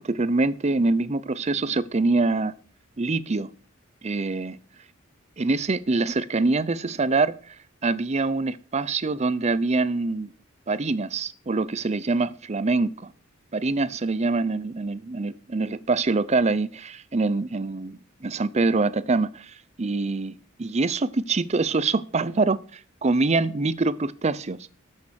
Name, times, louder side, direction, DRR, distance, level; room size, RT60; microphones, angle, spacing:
voice 1, 0.0-2.5 3.0-3.5 4.0-4.6 5.4-7.6 7.8-10.3 10.7-13.1 13.5-20.3 20.6-24.7, right 3 dB, 35° right, 0.6 m, -25 dB
13.0 x 6.5 x 6.4 m
head